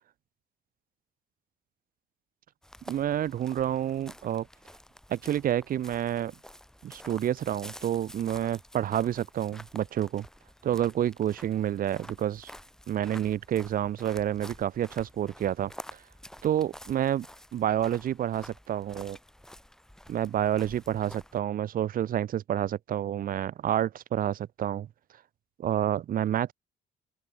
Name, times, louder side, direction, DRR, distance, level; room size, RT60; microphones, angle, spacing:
sound 1, 2.6-21.4, equal, 5° left, 6.4 m, -49 dB
voice 1, 2.9-4.5 5.1-6.3 6.8-10.3 10.6-12.5 12.9-16.0 16.4-17.2 17.5-19.2 20.1-24.9 25.6-26.5, right 11 dB, 55° right, 2.7 m, -29 dB
open air
cardioid pair, 110°, 17 cm